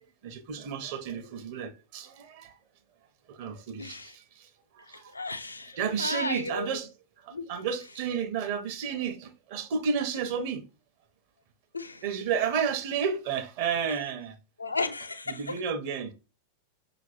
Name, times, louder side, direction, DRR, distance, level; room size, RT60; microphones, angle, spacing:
voice 1, 0.2-2.5 3.3-4.1 4.9-5.0 5.7-6.9 7.5-10.6 12.0-14.3 15.3-16.1, right 7 dB, 50° right, 0.9 m, -31 dB
voice 2, 3.8-4.2 4.8-6.8 7.3-7.5 11.7-12.0 14.6-15.5, left 3 dB, 80° left, 0.5 m, -34 dB
6.0 x 3.0 x 3.0 m
figure-of-eight pair, 90°, 0 cm